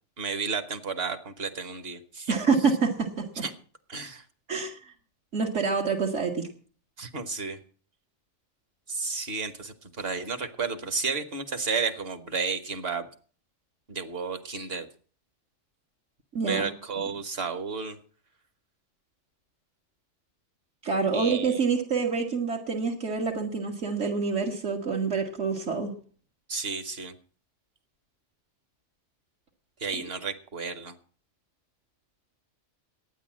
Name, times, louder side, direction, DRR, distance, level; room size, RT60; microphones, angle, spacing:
voice 1, 0.2-2.4 3.4-3.5 3.9-4.2 7.0-7.6 8.9-13.1 13.9-14.9 16.3-18.0 21.1-21.5 26.5-27.1 29.8-30.9, right 5 dB, 55° right, 10 dB, 1.5 m, -32 dB
voice 2, 2.3-3.4 4.5-4.8 5.3-6.5 16.3-16.7 20.8-25.9, right 5 dB, 75° right, 0 dB, 2.0 m, -27 dB
12.0 x 9.5 x 7.4 m, 0.43 s
omnidirectional pair, 1.3 m